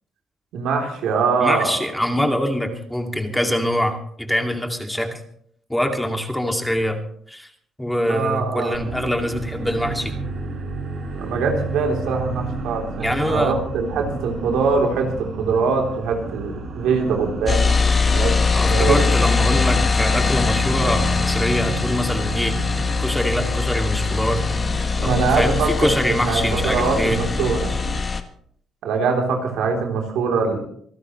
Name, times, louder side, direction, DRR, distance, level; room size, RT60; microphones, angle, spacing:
voice 1, 0.5-1.8 8.1-8.8 11.2-17.7 18.0-19.1 25.0-27.7 28.8-30.6, right 4 dB, 85° right, 2 dB, 3.5 m, -23 dB
voice 2, 1.4-5.2 5.7-7.0 7.3-7.5 7.8-10.1 13.0-13.5 18.5-22.6 23.0-24.4 25.0-27.2, equal, 5° left, 4 dB, 2.4 m, -24 dB
sound 1, 8.7-27.9, right 3 dB, 55° right, 7.8 m, -32 dB
sound 2, 17.5-28.2, left 4 dB, 35° left, 1.5 m, -22 dB
26.0 x 12.5 x 3.2 m, 0.64 s
cardioid pair, 90°, 0 cm